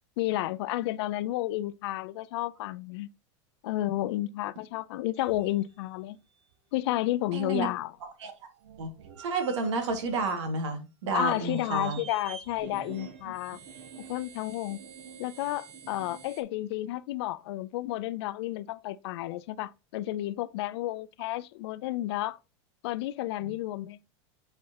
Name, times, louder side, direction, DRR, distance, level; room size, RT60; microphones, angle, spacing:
voice 1, 0.2-3.1 3.6-6.2 6.7-7.9 11.1-13.6 14.1-14.8 15.2-22.4 22.8-24.0, left 15 dB, 65° left, 0.5 m, -31 dB
sound 1, 5.1-6.0 6.5-6.6 7.0-10.7 11.1-16.4, right 6 dB, 65° right, 1.3 m, -51 dB
voice 2, 7.3-7.7 8.2-8.3 8.8-8.9 9.2-12.0 13.3-13.4 23.4-23.5, right 3 dB, 85° right, 2.0 m, -30 dB
sound 2, 12.6-16.3, right 7 dB, 45° right, 1.5 m, -49 dB
8.5 x 4.4 x 2.9 m
supercardioid pair, 160°, 15 cm